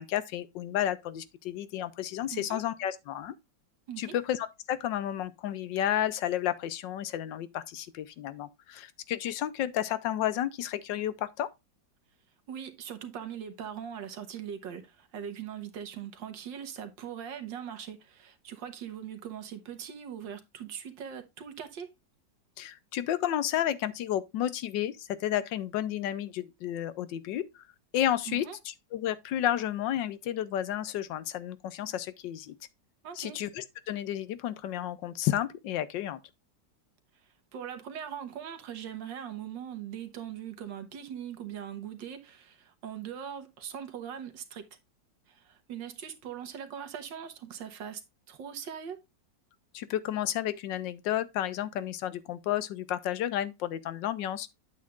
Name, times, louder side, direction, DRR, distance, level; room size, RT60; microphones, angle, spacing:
voice 1, 0.0-3.3 4.0-11.5 22.6-27.6 27.9-32.5 33.2-36.2 49.7-54.5, left 11 dB, 80° left, 1.4 m, -32 dB
voice 2, 2.3-2.6 3.9-4.1 12.5-21.9 28.3-28.6 33.0-33.4 37.2-44.7 45.3-48.0 48.3-49.0, right 8 dB, 85° right, 1.8 m, -41 dB
8.5 x 8.4 x 2.4 m
omnidirectional pair, 2.0 m